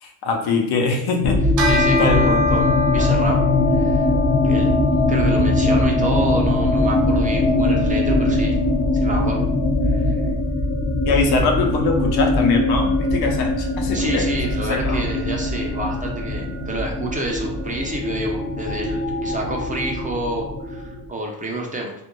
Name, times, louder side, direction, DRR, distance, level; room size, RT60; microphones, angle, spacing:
voice 1, 0.0-2.5 11.0-15.1, left 4 dB, 75° left, 2 dB, 0.7 m, -23 dB
sound 1, 1.2-21.1, left 1 dB, 30° left, 0.5 m, -21 dB
voice 2, 1.6-3.4 3.7-4.1 4.4-4.8 5.1-8.6 9.0-9.4 9.9-10.2 13.9-21.9, right 1 dB, 20° right, 0 dB, 0.4 m, -29 dB
Bell, 1.6-11.3, left 5 dB, 50° right, 0.8 m, -27 dB
2.5 x 2.1 x 2.9 m, 0.76 s
cardioid pair, 110°, 38 cm